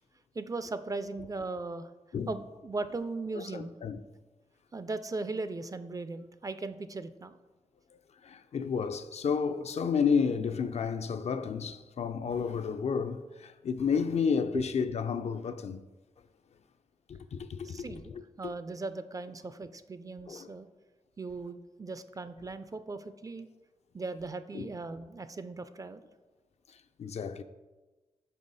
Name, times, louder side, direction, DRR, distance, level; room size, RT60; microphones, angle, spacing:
voice 1, 0.3-1.9 2.3-3.7 4.7-7.4 14.5-14.6 17.6-20.7 21.2-23.5 23.9-26.0, right 3 dB, 30° right, 0.4 m, -38 dB
voice 2, 3.4-4.0 8.2-15.8 17.1-18.5 20.3-20.5 24.5-24.7 26.7-27.4, left 6 dB, 65° left, 0.4 m, -31 dB
5.5 x 4.6 x 4.0 m
cardioid pair, 65°, 12 cm